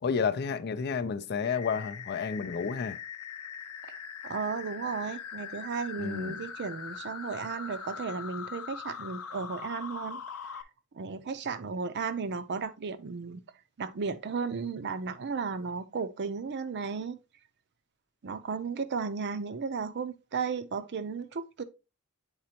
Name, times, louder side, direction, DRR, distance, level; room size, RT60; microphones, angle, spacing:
voice 1, 0.0-3.0 6.0-6.4, left 5 dB, 45° left, 0.4 m, -31 dB
sound 1, 1.4-10.6, left 7 dB, 80° left, 0.7 m, -41 dB
voice 2, 4.2-10.2 10.5-10.6 10.9-13.4 13.8-17.2 18.2-21.6, right 5 dB, 50° right, 0.5 m, -34 dB
8.8 x 4.1 x 2.8 m
head